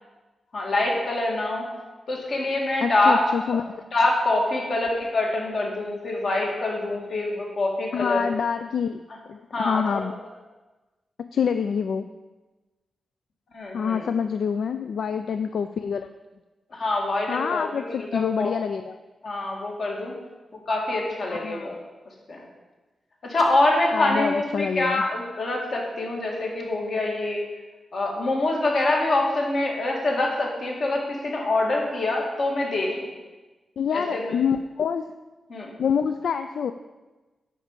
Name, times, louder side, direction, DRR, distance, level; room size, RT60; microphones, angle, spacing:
voice 1, 0.5-1.7 2.1-3.6 3.9-8.2 9.5-10.0 13.5-14.1 16.7-18.5 19.2-20.1 20.7-21.8 22.3-22.4 23.2-27.4 27.9-33.1 33.9-34.3 35.5-35.7, left 2 dB, 55° left, -1 dB, 2.2 m, -25 dB
voice 2, 2.8-3.8 7.9-9.0 9.3-10.1 11.2-12.1 13.7-16.1 17.3-19.0 21.3-21.7 23.9-25.0 33.8-35.1 35.8-36.7, left 7 dB, 80° left, 9 dB, 0.3 m, -26 dB
10.0 x 4.6 x 7.3 m, 1.2 s
wide cardioid pair, 145°, 0 cm